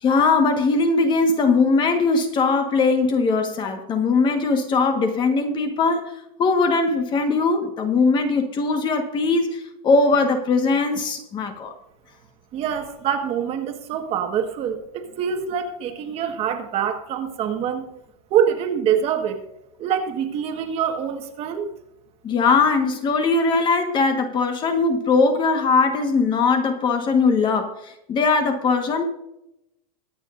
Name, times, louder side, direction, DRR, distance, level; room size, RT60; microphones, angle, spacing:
voice 1, 0.0-6.1 6.4-11.7 22.2-29.0, left 4 dB, 25° left, 6 dB, 1.4 m, -20 dB
voice 2, 12.5-17.8 18.3-19.4 19.8-21.7, right 8 dB, 30° right, 5 dB, 1.5 m, -25 dB
23.0 x 9.1 x 2.6 m, 0.85 s
supercardioid pair, 165°, 20 cm